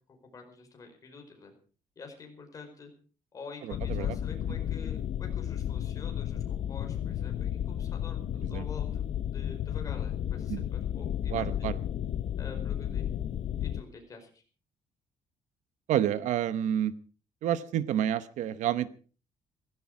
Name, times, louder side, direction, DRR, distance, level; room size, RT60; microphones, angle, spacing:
voice 1, 0.3-1.5 1.9-2.9 3.3-11.7 12.4-13.0 13.6-14.4, left 4 dB, 25° left, 3 dB, 4.9 m, -47 dB
sound 1, 3.7-13.8, left 10 dB, 55° left, 1.0 m, -33 dB
voice 2, 11.3-11.7 15.9-16.9 17.4-18.9, right 10 dB, 70° right, 15 dB, 0.9 m, -29 dB
17.0 x 15.5 x 4.9 m, 0.39 s
cardioid pair, 175°, 13 cm